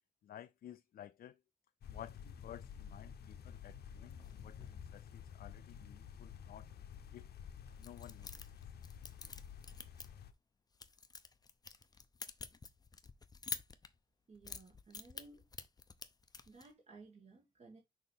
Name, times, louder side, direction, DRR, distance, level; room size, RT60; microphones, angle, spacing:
voice 1, 0.2-1.4 1.9-6.7 7.1-7.3 7.8-8.3, left 11 dB, 65° left, 0.4 m, -54 dB
sound 1, 1.8-10.3, left 8 dB, 80° left, 0.9 m, -51 dB
sound 2, 4.2-4.9 7.8-10.3 10.7-14.0 14.3-16.7, left 4 dB, 25° left, 0.6 m, -49 dB
voice 2, 14.3-15.5 16.5-17.8, right 3 dB, 40° right, 1.8 m, -57 dB
6.4 x 2.9 x 5.5 m
wide cardioid pair, 160°, 16 cm